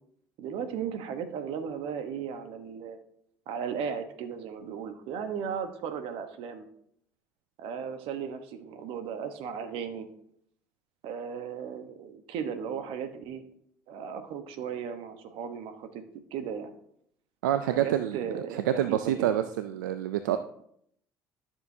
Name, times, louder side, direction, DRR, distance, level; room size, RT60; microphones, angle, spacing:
voice 1, 0.4-3.0 3.5-6.7 7.6-10.1 11.0-13.4 13.9-16.0 16.3-16.8 17.7-19.3, right 7 dB, 70° right, 8 dB, 1.1 m, -36 dB
voice 2, 17.4-18.2 18.7-20.4, right 11 dB, 85° right, 10 dB, 0.4 m, -27 dB
12.0 x 7.0 x 2.8 m, 0.69 s
hypercardioid pair, 65°, 10 cm